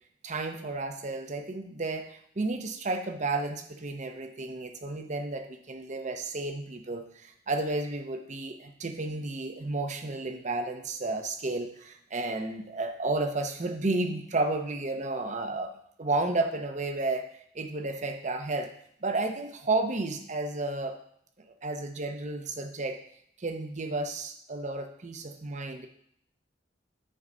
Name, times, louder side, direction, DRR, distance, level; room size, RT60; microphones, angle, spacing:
voice 1, 0.2-17.3 17.5-18.7 19.0-21.0 21.4-23.0 23.4-25.9, right 2 dB, 40° right, 6 dB, 0.8 m, -32 dB
10.0 x 4.0 x 5.0 m, 0.67 s
head